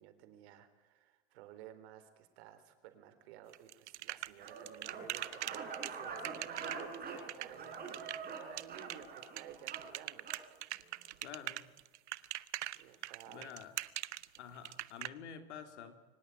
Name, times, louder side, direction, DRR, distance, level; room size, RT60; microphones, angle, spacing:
voice 1, 0.0-10.6 12.6-13.6, right 11 dB, 65° right, 10 dB, 3.9 m, -54 dB
sound 1, 3.5-15.1, right 14 dB, 85° right, 1.0 m, -42 dB
sound 2, 4.4-10.4, right 5 dB, 25° right, 5.8 m, -45 dB
voice 2, 11.2-11.7 13.0-13.7 14.4-16.0, left 7 dB, 80° left, 8 dB, 3.2 m, -49 dB
24.0 x 19.0 x 9.4 m, 1.3 s
supercardioid pair, 120°, 34 cm